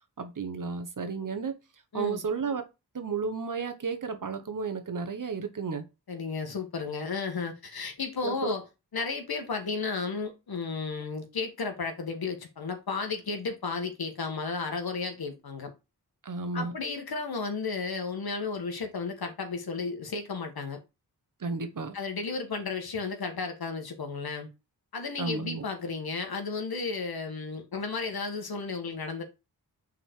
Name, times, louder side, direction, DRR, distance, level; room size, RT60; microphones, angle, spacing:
voice 1, 0.2-1.6 1.9-2.6 2.9-5.8 8.2-8.5 16.2-16.7 21.4-22.0 25.2-25.7, right 5 dB, 50° right, 1.2 m, -32 dB
voice 2, 6.1-8.7 8.9-15.7 16.5-20.8 21.9-24.5 24.9-29.2, left 4 dB, 65° left, 1.8 m, -33 dB
5.9 x 4.1 x 4.6 m
wide cardioid pair, 80°, 40 cm